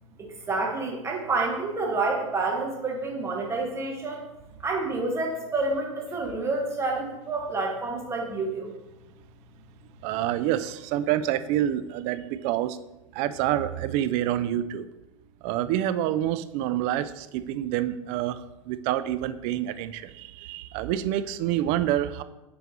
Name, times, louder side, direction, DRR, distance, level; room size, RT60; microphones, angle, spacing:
voice 1, 0.2-4.2 4.6-8.7, right 3 dB, 15° right, 0 dB, 1.4 m, -28 dB
voice 2, 10.0-12.8 13.1-14.9 15.4-22.2, right 12 dB, 40° right, 12 dB, 0.4 m, -27 dB
9.0 x 4.6 x 3.2 m, 0.96 s
figure-of-eight pair, 85°, 17 cm